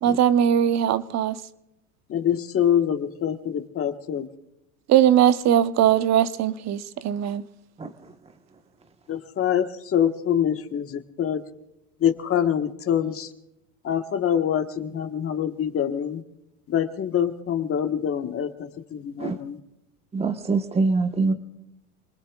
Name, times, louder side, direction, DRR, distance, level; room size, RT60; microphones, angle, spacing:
voice 1, 0.0-1.4 4.9-7.4, right 10 dB, 40° right, 1.0 m, -20 dB
voice 2, 2.1-4.3 9.1-11.5 12.0-13.3 13.8-16.2 16.7-19.6, left 9 dB, 30° left, 1.5 m, -25 dB
voice 3, 7.8-8.2 19.2-19.4 20.1-21.3, right 3 dB, 15° right, 1.3 m, -24 dB
28.0 x 20.5 x 2.4 m
supercardioid pair, 110°, 43 cm